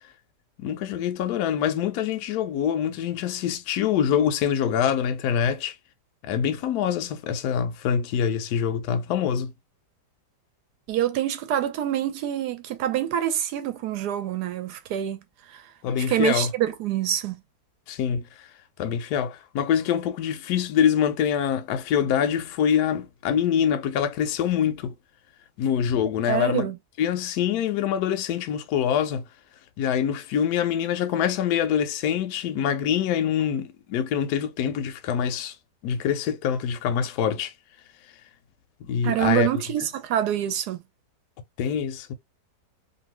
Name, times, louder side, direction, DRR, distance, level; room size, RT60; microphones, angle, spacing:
voice 1, 0.6-5.7 6.2-9.5 15.8-16.5 17.9-18.5 18.8-24.9 25.6-26.7 27.0-29.2 29.8-35.5 35.8-37.5 38.9-39.5 41.6-42.1, left 8 dB, 75° left, 1.0 m, -25 dB
voice 2, 10.9-15.2 15.5-15.6 16.0-17.3 26.3-26.8 39.0-40.8, right 11 dB, 75° right, 1.1 m, -26 dB
2.7 x 2.6 x 3.0 m
omnidirectional pair, 1.8 m